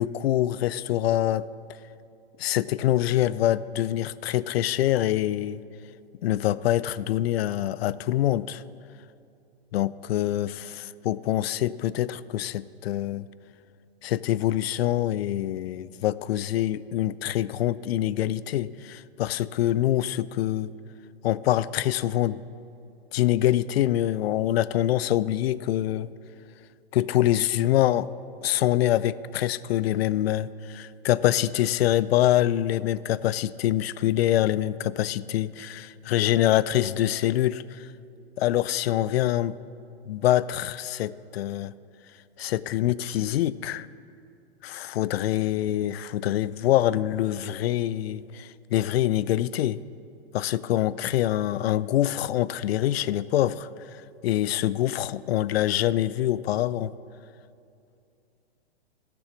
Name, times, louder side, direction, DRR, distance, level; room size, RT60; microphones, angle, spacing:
voice 1, 0.0-1.5 2.4-5.6 6.2-8.6 9.7-13.3 14.0-20.7 21.2-22.4 23.1-26.1 26.9-28.1 28.4-37.9 38.4-39.6 40.1-41.7 42.4-43.9 44.6-49.8 50.3-53.7 54.2-56.9, left 13 dB, 75° left, 18 dB, 0.5 m, -25 dB
13.5 x 6.9 x 6.2 m, 2.5 s
hypercardioid pair, 125°, 31 cm